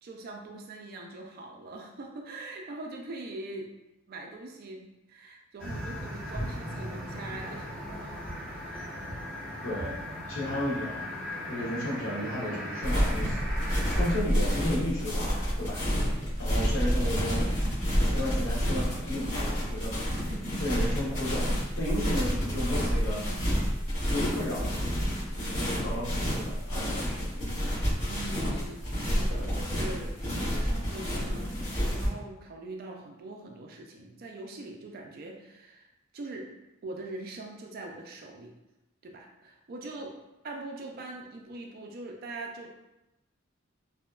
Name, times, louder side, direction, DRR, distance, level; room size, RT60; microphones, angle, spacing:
voice 1, 0.0-3.7 4.1-8.2 8.6-8.9 28.1-31.5 31.8-35.9 36.1-36.5 36.8-38.5 39.0-40.1 40.4-42.7, right 2 dB, 50° right, 1 dB, 0.4 m, -42 dB
sound 1, 5.6-14.2, equal, 5° right, 1.0 m, -37 dB
voice 2, 9.6-10.0 10.3-11.1 11.5-13.5 14.0-16.1 16.4-17.5 18.0-20.0 20.6-23.2 24.1-24.8 25.4-27.3, left 1 dB, 90° left, -5 dB, 0.9 m, -33 dB
sound 2, 12.8-32.1, equal, 40° left, 1.3 m, -29 dB
2.7 x 2.3 x 2.3 m, 0.95 s
head